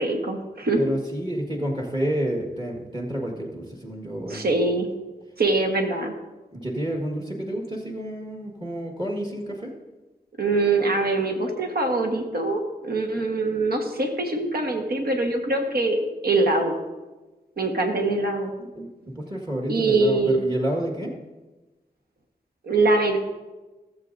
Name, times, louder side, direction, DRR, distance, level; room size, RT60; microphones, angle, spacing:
voice 1, 0.0-0.8 4.3-4.9 5.4-6.1 10.4-16.0 16.2-16.8 17.6-18.5 18.8-18.9 19.7-20.4 22.6-23.2, right 2 dB, 60° right, 3 dB, 1.4 m, -23 dB
voice 2, 0.8-4.4 6.5-9.7 18.7-21.1, right 1 dB, 25° right, 0 dB, 1.7 m, -29 dB
17.0 x 7.5 x 2.6 m, 1.2 s
cardioid pair, 55°, 17 cm